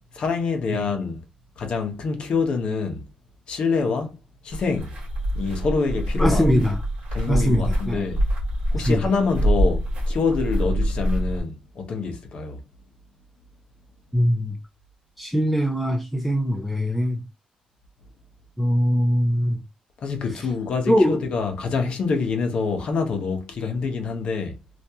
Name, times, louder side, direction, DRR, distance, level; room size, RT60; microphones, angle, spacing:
voice 1, 0.1-1.2 1.6-3.1 3.5-4.2 4.4-4.9 5.3-6.5 7.1-8.2 8.7-12.6 20.0-24.6, left 4 dB, 45° left, 0.9 m, -26 dB
sound 1, 4.5-11.4, equal, 55° right, 1.7 m, -25 dB
voice 2, 6.2-6.8 7.3-8.1 8.9-9.0 14.1-14.6 15.2-17.2 18.6-19.6 20.9-21.2, equal, ahead, 0.4 m, -22 dB
3.5 x 2.6 x 2.8 m
wide cardioid pair, 180°, 2 cm